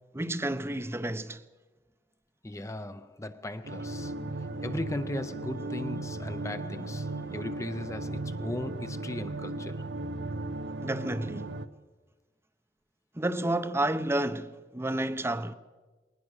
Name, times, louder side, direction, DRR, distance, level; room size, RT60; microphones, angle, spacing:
voice 1, 0.1-1.4 10.8-11.5 13.1-15.5, right 1 dB, 15° right, 0.7 m, -30 dB
voice 2, 2.4-4.1 4.6-9.9, left 1 dB, 15° left, 0.6 m, -37 dB
sound 1, 3.6-11.7, right 2 dB, 85° right, 1.1 m, -36 dB
21.0 x 19.5 x 6.5 m
head